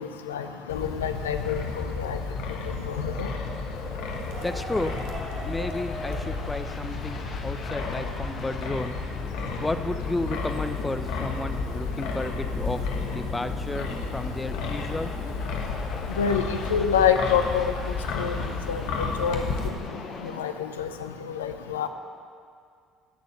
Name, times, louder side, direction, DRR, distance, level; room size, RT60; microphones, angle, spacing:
voice 1, 0.0-1.6 2.0-2.2 2.9-3.3 16.2-17.7 18.2-18.4 18.7-19.4 20.2-20.9 21.3-21.9, left 7 dB, 85° left, 8 dB, 0.6 m, -26 dB
Wind, 0.7-19.7, left 4 dB, 70° left, 1.3 m, -32 dB
sound 1, 2.0-20.4, left 3 dB, 45° left, 1.5 m, -41 dB
sound 2, 4.2-9.8, right 2 dB, 55° right, 4.0 m, -44 dB
voice 2, 4.4-5.0 5.4-9.0 9.6-12.8 13.1-15.1, left 2 dB, 15° left, 10 dB, 0.8 m, -32 dB
16.5 x 6.7 x 6.6 m, 2.2 s
hypercardioid pair, 55°, 0 cm